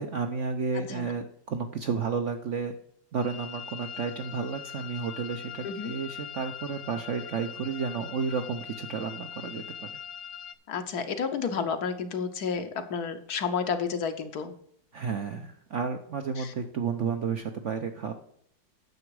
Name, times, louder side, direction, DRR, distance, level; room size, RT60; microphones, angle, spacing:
voice 1, 0.0-2.7 3.1-9.9 14.9-18.1, right 5 dB, 60° right, 6 dB, 0.8 m, -32 dB
sound 1, 3.2-10.6, left 8 dB, 85° left, 1.5 m, -42 dB
voice 2, 10.7-14.5 16.4-16.5, left 6 dB, 65° left, 9 dB, 1.3 m, -31 dB
9.8 x 7.0 x 4.7 m, 0.66 s
omnidirectional pair, 2.0 m